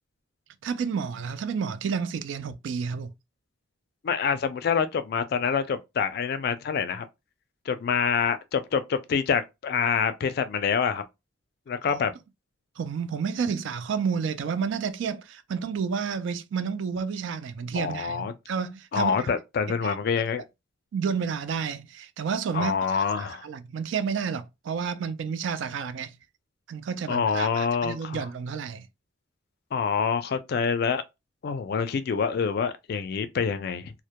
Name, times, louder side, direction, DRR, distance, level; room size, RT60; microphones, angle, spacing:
voice 1, 0.6-3.1 12.8-19.3 19.7-20.0 20.9-26.2 26.7-28.9, right 6 dB, 75° right, 0.3 m, -30 dB
voice 2, 4.0-7.1 7.7-11.0 11.7-12.1 17.7-18.3 18.9-20.4 22.5-23.5 27.1-28.3 29.7-31.0 31.4-33.9, left 6 dB, 55° left, 0.3 m, -26 dB
2.1 x 2.1 x 2.8 m
head